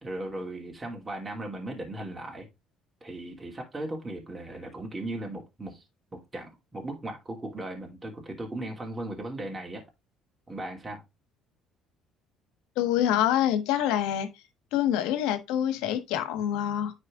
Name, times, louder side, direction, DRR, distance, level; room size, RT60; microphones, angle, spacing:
voice 1, 0.0-2.5 3.0-5.8 6.1-9.8 10.5-11.0, right 1 dB, 20° right, 2.7 m, -37 dB
voice 2, 12.8-14.3 14.7-16.9, left 11 dB, 85° left, 1.3 m, -26 dB
9.8 x 4.3 x 3.7 m
cardioid pair, 95°, 0 cm